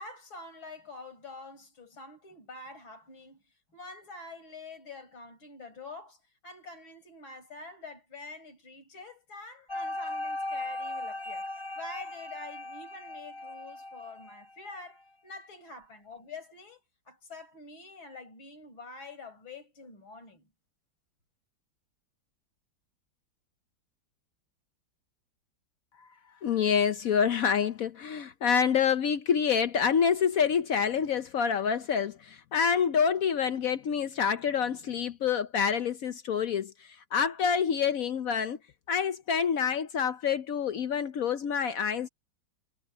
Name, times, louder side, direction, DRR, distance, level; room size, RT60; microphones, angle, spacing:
voice 1, 0.0-3.4 3.7-11.5 11.8-20.5, left 3 dB, 80° left, 5.5 m, -46 dB
sound 1, 9.7-14.8, left 1 dB, 15° left, 5.7 m, -38 dB
voice 2, 26.4-38.6 38.9-42.1, left 7 dB, 65° left, 0.9 m, -27 dB
omnidirectional pair, 2.2 m